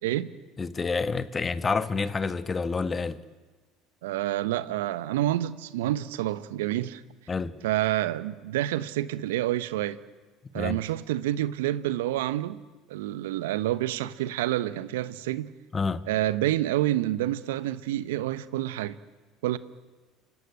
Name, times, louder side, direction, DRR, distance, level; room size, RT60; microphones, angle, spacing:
voice 1, 0.6-3.2 7.3-7.6 10.5-10.8 15.7-16.0, left 4 dB, 25° left, 1.4 m, -28 dB
voice 2, 4.0-7.0 7.6-10.0 10.5-12.6 12.9-15.5 16.1-19.0 19.4-19.6, right 14 dB, 75° right, 0.9 m, -28 dB
29.5 x 17.0 x 9.9 m
hypercardioid pair, 70°, 0 cm